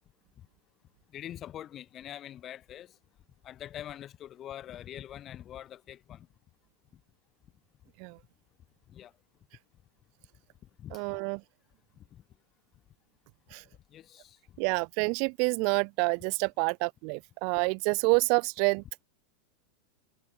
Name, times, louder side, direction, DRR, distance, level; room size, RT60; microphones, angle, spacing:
voice 1, 1.1-2.9 3.4-6.3 8.9-9.1 10.8-11.0 12.1-12.2 13.9-14.4, left 11 dB, 30° left, 1.1 m, -44 dB
voice 2, 10.9-11.4 13.5-13.6 14.6-18.8, right 40 dB or more, 45° right, 0.4 m, -28 dB
figure-of-eight pair, 90°, 0 cm